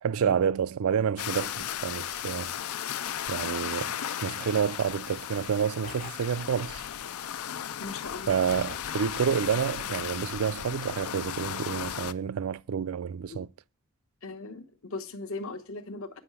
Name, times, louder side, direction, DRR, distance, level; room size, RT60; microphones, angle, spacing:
voice 1, 0.0-2.5 3.3-3.9 4.2-6.8 8.3-13.5, right 7 dB, 75° right, 0.4 m, -29 dB
sound 1, 1.2-12.1, left 10 dB, 85° left, 0.5 m, -35 dB
sound 2, 5.8-7.1 8.5-9.6, left 5 dB, 40° left, 0.6 m, -46 dB
voice 2, 7.8-8.4 13.3-13.4 14.2-16.1, left 3 dB, 70° left, 1.1 m, -38 dB
9.6 x 5.6 x 7.0 m
head